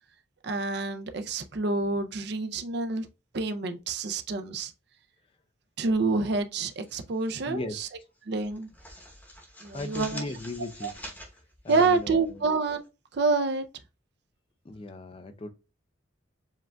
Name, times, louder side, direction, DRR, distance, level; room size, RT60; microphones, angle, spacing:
voice 1, 0.4-3.1 3.3-4.7 5.8-7.9 8.3-8.7 9.6-10.2 10.8-10.9 11.7-12.8 13.1-13.7, right 3 dB, 55° right, 0.5 m, -27 dB
sound 1, 6.6-7.5 7.8-8.0 8.4-12.9, equal, 10° left, 0.8 m, -46 dB
voice 2, 7.4-7.8 9.7-10.9 11.6-12.4 14.6-15.5, left 2 dB, 25° left, 0.4 m, -37 dB
7.2 x 2.4 x 2.2 m
head